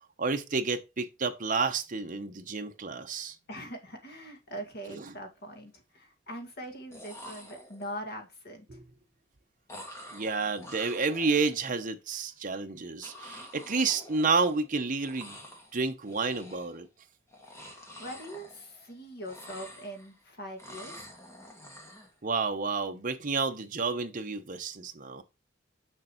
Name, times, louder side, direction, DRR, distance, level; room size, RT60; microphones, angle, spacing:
voice 1, 0.2-3.4 5.0-5.1 8.7-8.8 10.1-15.4 15.7-16.9 22.2-25.2, right 4 dB, 45° right, 1.0 m, -30 dB
voice 2, 3.5-8.8 17.5-21.1, equal, 60° left, 2.1 m, -42 dB
sound 1, 4.5-4.7 5.0-5.6 6.6-6.7 6.9-8.1 9.7-11.9 13.0-14.7 15.0-15.7 16.0-16.8 17.3-18.9 19.2-20.2 20.6-22.1, equal, 15° left, 1.9 m, -48 dB
6.7 x 6.6 x 3.1 m
head